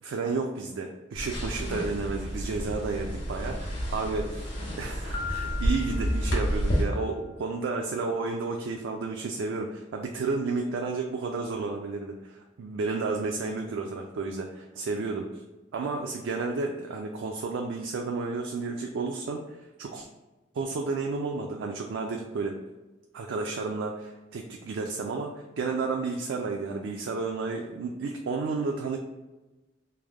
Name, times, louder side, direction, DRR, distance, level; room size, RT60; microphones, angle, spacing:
voice 1, 0.0-15.3 15.7-20.1 20.5-22.6 23.1-29.0, right 4 dB, 80° right, 2 dB, 0.3 m, -32 dB
sound 1, 1.1-6.8, equal, 70° left, 1.2 m, -30 dB
Piano, 5.1-7.0, left 6 dB, 25° left, 0.4 m, -39 dB
3.3 x 2.0 x 3.5 m, 1.1 s
head